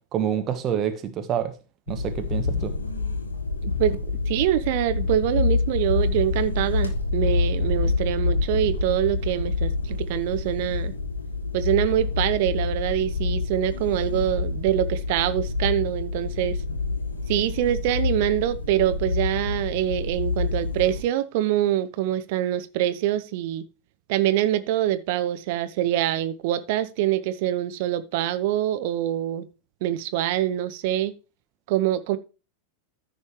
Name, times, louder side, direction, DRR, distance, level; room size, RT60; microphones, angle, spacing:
voice 1, 0.1-1.5 1.9-2.7, right 9 dB, 30° right, 1.3 m, -27 dB
sound 1, 1.9-21.0, left 3 dB, 75° left, 1.1 m, -27 dB
voice 2, 3.6-10.9 11.5-16.6 17.3-23.6 24.1-29.5 29.8-31.1 31.7-32.2, right 12 dB, 50° right, 0.8 m, -25 dB
14.0 x 5.4 x 3.2 m
figure-of-eight pair, 90°, 0 cm